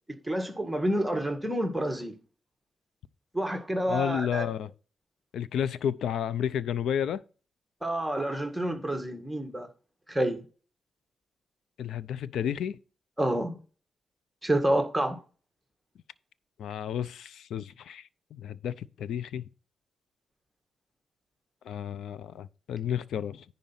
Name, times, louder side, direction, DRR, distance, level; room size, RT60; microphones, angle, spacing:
voice 1, 0.2-2.2 3.3-4.4 7.8-9.7 10.1-10.4 13.2-13.6 14.4-15.2, right 1 dB, 5° right, 1.8 m, -28 dB
voice 2, 3.9-4.7 5.3-7.2 11.8-12.8 16.6-19.4 21.7-23.4, left 9 dB, 85° left, 0.5 m, -31 dB
10.5 x 4.0 x 5.8 m
cardioid pair, 80°, 0 cm